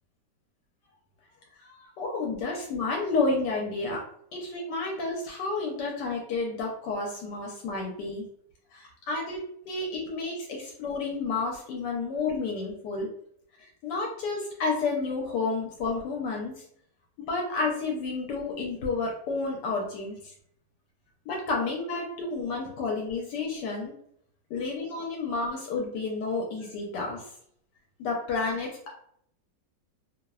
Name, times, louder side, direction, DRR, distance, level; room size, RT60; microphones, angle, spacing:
voice 1, 1.7-4.0 4.3-8.2 8.7-13.1 13.8-16.5 17.2-20.2 21.3-23.9 24.5-27.2 28.0-28.9, left 3 dB, 75° left, -1 dB, 1.1 m, -30 dB
2.9 x 2.0 x 2.3 m, 0.67 s
omnidirectional pair, 1.9 m